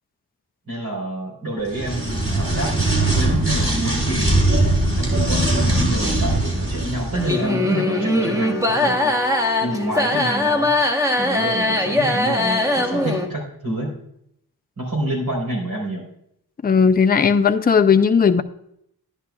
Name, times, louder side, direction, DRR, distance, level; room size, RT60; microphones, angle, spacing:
voice 1, 0.7-4.3 4.9-9.2 9.6-10.7 11.2-13.9 14.8-16.1, right 1 dB, 65° right, -2 dB, 4.1 m, -28 dB
sound 1, 1.7-7.4, right 1 dB, 35° right, 3.2 m, -20 dB
sound 2, 7.1-13.3, left 2 dB, 10° right, 1.1 m, -21 dB
voice 2, 16.6-18.4, left 6 dB, 25° left, 9 dB, 0.4 m, -16 dB
11.5 x 10.0 x 2.3 m, 0.74 s
wide cardioid pair, 80°, 39 cm